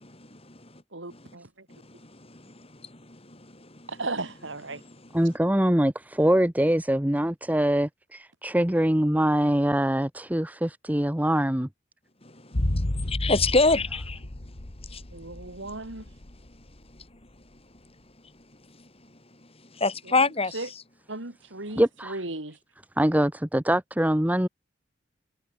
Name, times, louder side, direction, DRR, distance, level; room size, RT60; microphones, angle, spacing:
voice 1, 0.0-0.8 1.1-1.3 1.7-3.9 4.7-5.1 12.2-14.2 14.9-15.0 19.7-20.8, left 3 dB, 30° left, 6.9 m, -28 dB
voice 2, 0.9-1.5 3.9-4.8 15.1-16.0 20.5-20.7 21.1-22.6, right 2 dB, 80° right, 3.6 m, -35 dB
voice 3, 5.1-11.7 21.8-22.2 23.0-24.5, right 1 dB, 10° right, 1.0 m, -23 dB
sound 1, 12.5-16.8 17.0-17.1, left 1 dB, 55° left, 1.9 m, -31 dB
head